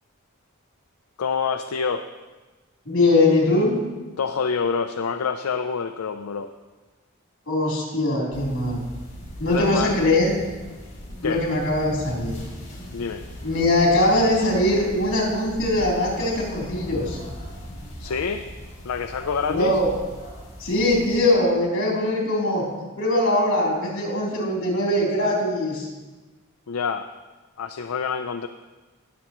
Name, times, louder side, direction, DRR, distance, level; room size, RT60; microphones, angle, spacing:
voice 1, 1.2-2.1 4.2-6.5 9.5-10.0 11.2-11.4 12.9-13.2 18.0-18.4 18.8-19.8 26.7-27.1 27.6-28.5, left 5 dB, 80° left, 7 dB, 0.4 m, -27 dB
voice 2, 2.8-3.7 7.5-8.8 9.4-10.3 11.2-12.3 13.4-17.2 19.5-19.9 20.6-22.7 23.0-25.9, left 1 dB, 60° left, -3 dB, 3.4 m, -21 dB
sound 1, 8.3-21.2, equal, 35° left, 3.9 m, -39 dB
19.5 x 7.1 x 3.0 m, 1.2 s
head